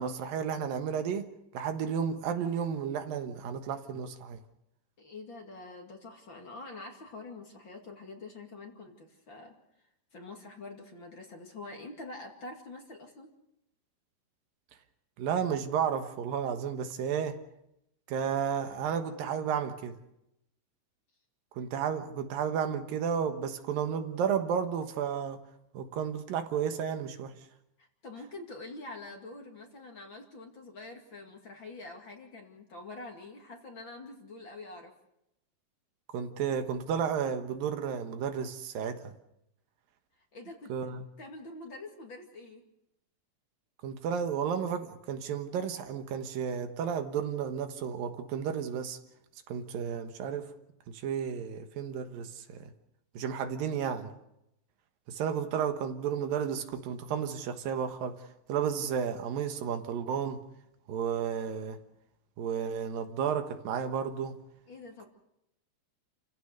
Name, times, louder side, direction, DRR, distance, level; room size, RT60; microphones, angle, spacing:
voice 1, 0.0-4.4 15.2-17.4 18.1-20.0 21.6-25.4 25.7-27.4 36.1-39.1 40.7-41.0 43.8-49.0 49.5-50.5 50.9-52.7 53.1-54.1 55.1-60.4 60.9-61.8 62.4-64.4, right 7 dB, 80° right, 7 dB, 3.1 m, -32 dB
voice 2, 5.0-9.5 10.1-13.3 27.8-34.9 40.3-42.6 64.7-65.1, left 2 dB, 40° left, 2 dB, 2.6 m, -46 dB
29.0 x 16.0 x 6.7 m, 0.84 s
omnidirectional pair, 4.0 m